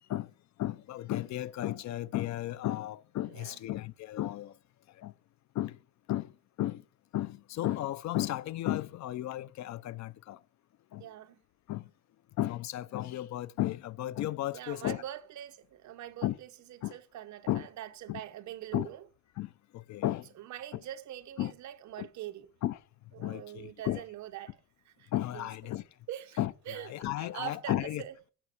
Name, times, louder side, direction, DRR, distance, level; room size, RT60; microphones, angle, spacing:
voice 1, 0.6-4.5 5.0-5.1 5.6-5.7 6.1-6.3 6.6-6.8 7.1-10.4 10.9-11.0 11.7-11.8 12.4-15.0 16.2-16.3 16.8-16.9 17.5-17.7 18.1-18.2 18.7-18.9 19.4-19.5 19.9-20.3 21.4-21.5 22.0-22.1 22.6-22.8 23.2-24.0 25.1-25.8 26.4-26.5 26.9-28.0, left 14 dB, 50° left, 0.6 m, -33 dB
voice 2, 3.3-3.6 11.0-11.4 14.5-19.1 20.4-22.5 23.1-25.7 26.1-28.1, right 12 dB, 50° right, 1.0 m, -44 dB
16.0 x 6.0 x 4.4 m
cardioid pair, 140°, 37 cm